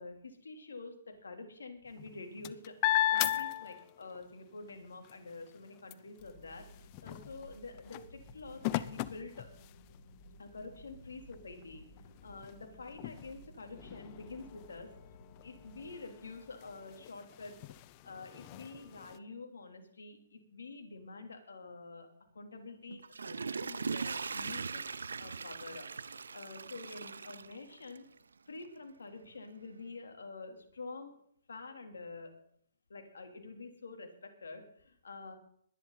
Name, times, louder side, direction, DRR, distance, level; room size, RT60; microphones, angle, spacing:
voice 1, 0.0-2.8 3.1-9.5 10.4-17.6 18.0-24.8 25.2-28.1 28.5-31.1 31.5-32.4 32.9-35.3, left 3 dB, 80° left, 5 dB, 3.3 m, -48 dB
sound 1, 1.9-4.3 4.7-10.1 10.8-10.9 11.2-19.2, left 15 dB, 35° left, 0.7 m, -38 dB
sound 2, 6.2-15.9, left 1 dB, 60° left, 2.8 m, -56 dB
Water / Toilet flush, 22.9-28.2 28.6-28.7, right 5 dB, 80° right, 0.5 m, -40 dB
21.5 x 11.0 x 4.1 m, 0.65 s
hypercardioid pair, 135°, 0 cm